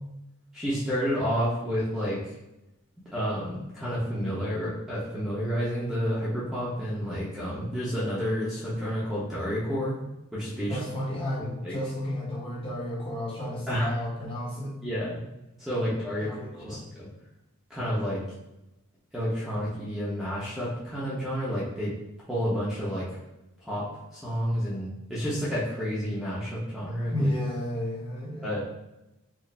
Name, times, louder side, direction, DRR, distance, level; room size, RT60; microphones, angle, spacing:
voice 1, 0.5-2.4 3.1-9.9 10.3-10.8 11.4-11.8 13.7-13.9 14.8-15.2 15.6-17.1 17.7-18.2 19.1-21.9 22.3-23.1 23.6-23.8 24.1-27.3 28.4-28.6, equal, ahead, -10 dB, 0.8 m, -30 dB
voice 2, 10.7-14.7 16.2-16.8 27.1-28.6, left 1 dB, 25° left, -6 dB, 1.0 m, -32 dB
4.8 x 2.1 x 3.4 m, 0.93 s
head